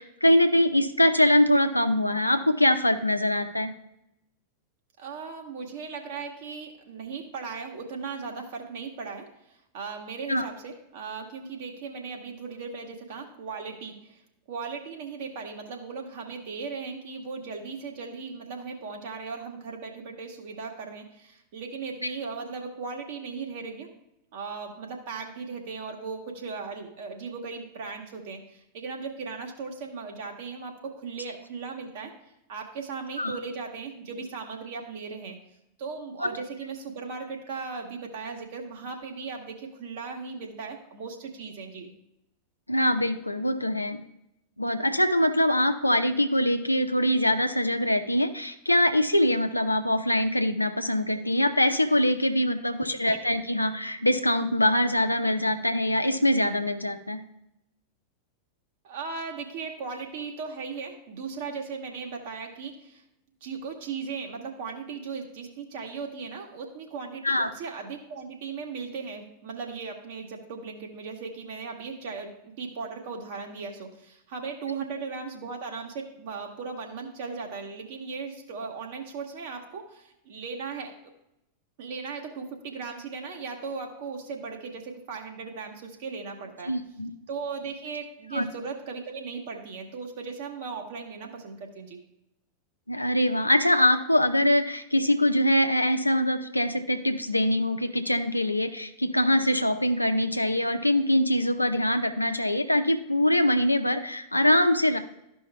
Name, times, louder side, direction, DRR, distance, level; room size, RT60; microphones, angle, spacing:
voice 1, 0.0-3.7 10.3-10.4 33.2-33.4 36.2-36.3 42.7-44.0 44.6-57.2 67.2-67.5 86.7-87.1 88.3-88.4 92.9-105.0, left 1 dB, 85° left, 6 dB, 0.6 m, -23 dB
voice 2, 5.0-9.3 9.7-14.2 14.5-23.9 24.3-32.1 32.5-35.4 35.8-41.9 52.9-53.1 58.8-63.0 63.4-80.9 81.8-86.7 87.3-92.0, right 5 dB, 55° right, 2 dB, 1.5 m, -37 dB
13.5 x 5.4 x 2.3 m, 0.84 s
figure-of-eight pair, 90°, 0 cm